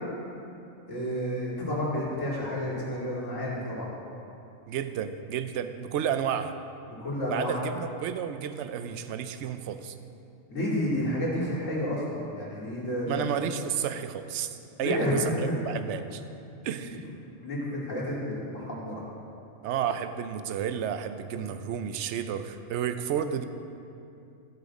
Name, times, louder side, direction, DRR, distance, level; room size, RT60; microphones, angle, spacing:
voice 1, 0.9-3.9 7.0-7.7 10.5-13.2 14.8-15.6 17.4-19.0, left 1 dB, 65° left, -6 dB, 2.9 m, -30 dB
voice 2, 4.7-6.5 7.3-10.0 13.1-16.2 16.6-17.0 19.6-23.4, right 8 dB, 65° right, 10 dB, 0.8 m, -31 dB
15.0 x 8.6 x 4.1 m, 2.7 s
omnidirectional pair, 1.4 m